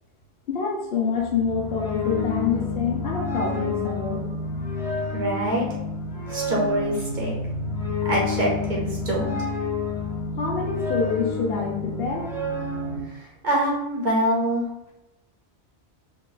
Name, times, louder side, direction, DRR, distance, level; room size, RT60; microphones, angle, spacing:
voice 1, 0.5-4.4 10.4-12.3, left 5 dB, 65° left, 0 dB, 0.8 m, -26 dB
sound 1, 1.2-13.0, left 3 dB, 5° right, 0.4 m, -29 dB
voice 2, 5.1-5.7 6.3-7.3 8.0-9.5 13.1-14.6, right 1 dB, 50° right, -3 dB, 0.8 m, -25 dB
2.8 x 2.3 x 3.8 m, 0.93 s
omnidirectional pair, 1.2 m